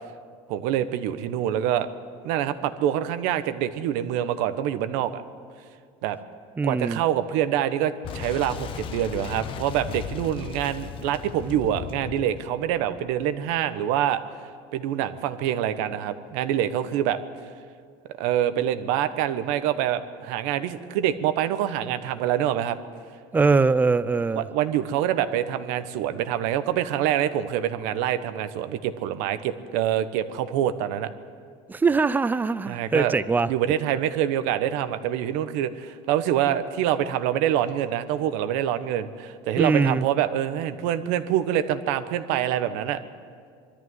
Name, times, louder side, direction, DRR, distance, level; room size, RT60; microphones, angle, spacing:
voice 1, 0.5-1.9 2.2-5.2 6.0-6.2 6.6-14.2 14.7-17.2 18.2-22.8 24.4-31.1 32.7-33.1 33.5-43.0, right 11 dB, 75° right, 11 dB, 1.2 m, -25 dB
voice 2, 6.6-7.0 23.3-24.5 31.7-33.5 39.5-40.1, right 4 dB, 15° right, 16 dB, 0.5 m, -22 dB
Boom, 8.0-13.6, left 9 dB, 40° left, 0.8 m, -37 dB
22.5 x 13.5 x 9.6 m, 2.2 s
cardioid pair, 145°, 13 cm